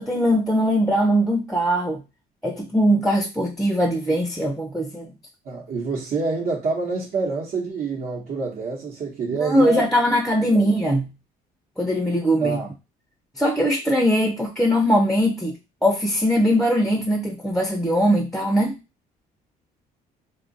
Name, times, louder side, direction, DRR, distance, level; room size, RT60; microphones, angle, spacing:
voice 1, 0.1-2.0 2.4-5.1 9.3-11.1 11.8-12.6 13.4-15.6 15.8-18.8, equal, ahead, 2 dB, 0.5 m, -21 dB
voice 2, 5.4-9.9 10.5-10.7 12.4-12.7, right 4 dB, 60° right, -5 dB, 1.0 m, -27 dB
2.7 x 2.3 x 3.9 m, 0.27 s
cardioid pair, 110°, 17 cm